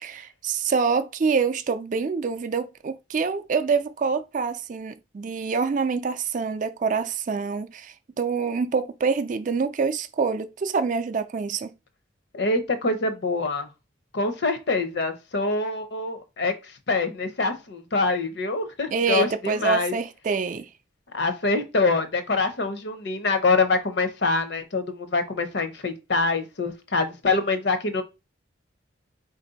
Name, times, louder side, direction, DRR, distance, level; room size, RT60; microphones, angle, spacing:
voice 1, 0.0-11.7 18.9-20.7, right 5 dB, 40° right, 0.3 m, -26 dB
voice 2, 12.3-13.7 14.1-19.9 21.1-28.0, left 3 dB, 60° left, 0.7 m, -25 dB
4.1 x 2.6 x 3.9 m
head